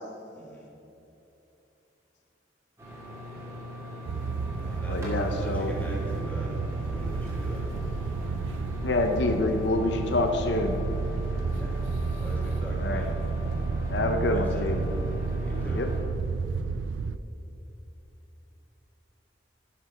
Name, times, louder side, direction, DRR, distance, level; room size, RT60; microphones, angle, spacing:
voice 1, 0.3-0.7 4.2-4.3 4.6-7.7 11.6-11.8 12.1-13.1 14.2-14.7 15.4-15.8, right 1 dB, 10° left, -4 dB, 1.9 m, -42 dB
sound 1, 2.8-16.0, left 1 dB, 15° right, 2.4 m, -39 dB
sound 2, 4.1-17.2, right 4 dB, 85° right, 0.4 m, -31 dB
voice 2, 4.9-5.7 8.8-10.8 12.8-13.0 13.9-14.8 15.8-15.9, left 2 dB, 70° left, 6 dB, 0.7 m, -27 dB
10.5 x 6.7 x 5.8 m, 2.9 s
head